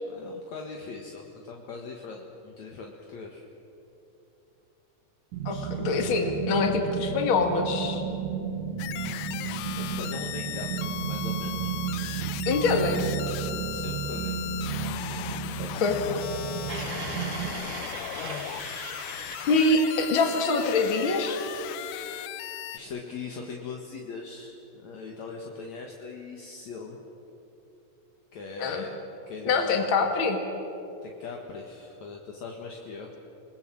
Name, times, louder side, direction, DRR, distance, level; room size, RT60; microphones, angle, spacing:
voice 1, 0.1-3.4 5.5-5.7 6.1-6.2 8.8-9.5 9.8-11.8 12.8-13.0 13.5-14.5 15.1-15.7 18.2-18.8 19.1-19.2 22.7-27.0 28.3-28.9 29.3-29.8 31.0-33.1, left 4 dB, 65° left, 0 dB, 2.7 m, -41 dB
sound 1, 5.3-17.5, right 7 dB, 90° right, 3.4 m, -33 dB
voice 2, 5.5-8.0 12.5-13.0 15.8-16.0 19.5-21.4 28.6-28.8 29.5-30.4, left 3 dB, 45° left, 4 dB, 2.7 m, -24 dB
sound 2, 8.8-22.8, left 13 dB, 85° left, 2.3 m, -37 dB
sound 3, 16.7-21.7, right 5 dB, 45° right, 1.7 m, -41 dB
28.5 x 20.5 x 7.6 m, 3.0 s
omnidirectional pair, 3.7 m